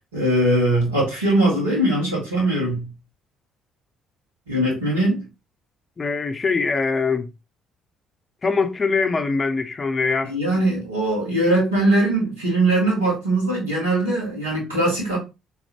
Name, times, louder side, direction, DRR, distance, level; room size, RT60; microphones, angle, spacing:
voice 1, 0.1-2.9 4.5-5.2 10.2-15.2, right 1 dB, 85° right, 2.3 m, -21 dB
voice 2, 6.0-7.3 8.4-10.3, left 4 dB, 30° left, 0.8 m, -22 dB
4.2 x 3.9 x 3.0 m
figure-of-eight pair, 50°, 0 cm